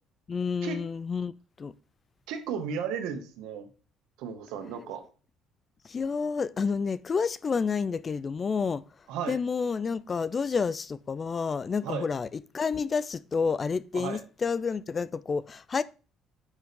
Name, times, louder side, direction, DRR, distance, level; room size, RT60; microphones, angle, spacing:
voice 1, 0.3-1.7 5.9-8.8 9.3-15.8, left 5 dB, 25° left, 0.3 m, -29 dB
voice 2, 2.3-3.7 4.2-5.0 9.1-9.4 11.8-12.1 13.9-14.2, right 7 dB, 85° right, 1.9 m, -34 dB
10.5 x 6.2 x 3.7 m
cardioid pair, 165°, 0 cm